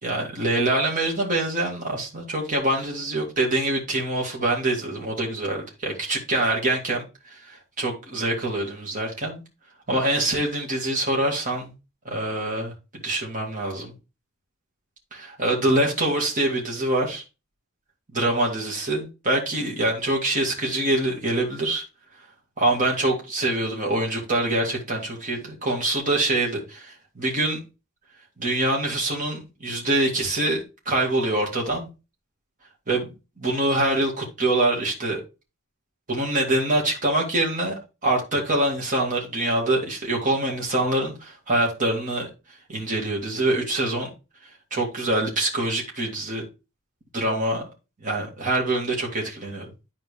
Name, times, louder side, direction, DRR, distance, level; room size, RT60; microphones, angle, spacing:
voice 1, 0.0-9.4 9.9-11.7 12.1-13.9 15.1-17.2 18.1-21.8 22.6-27.6 28.4-31.9 32.9-33.1 33.4-35.2 36.1-42.3 42.7-44.1 44.7-46.4 47.1-47.7 48.0-49.6, right 1 dB, 35° right, 2.2 m, -25 dB
10.5 x 4.3 x 3.2 m
head